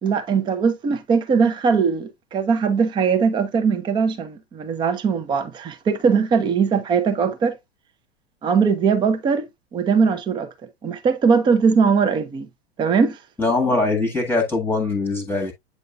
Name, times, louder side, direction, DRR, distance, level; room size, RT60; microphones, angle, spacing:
voice 1, 0.0-7.5 8.4-10.5 10.8-12.5 12.8-13.2, right 5 dB, 15° right, 0.7 m, -20 dB
voice 2, 13.4-15.5, left 3 dB, 5° left, 1.4 m, -22 dB
8.5 x 5.1 x 2.3 m
figure-of-eight pair, 100°, 31 cm